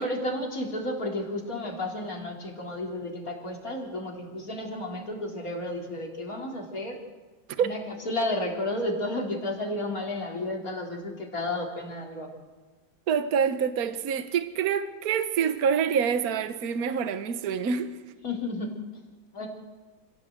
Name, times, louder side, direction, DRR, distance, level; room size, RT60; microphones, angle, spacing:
voice 1, 0.0-7.0 7.6-12.3 18.2-18.8 19.3-19.5, left 1 dB, 40° left, 3.9 m, -32 dB
voice 2, 13.1-17.9, right 7 dB, 50° right, 1.4 m, -26 dB
26.5 x 16.0 x 7.8 m
omnidirectional pair, 2.2 m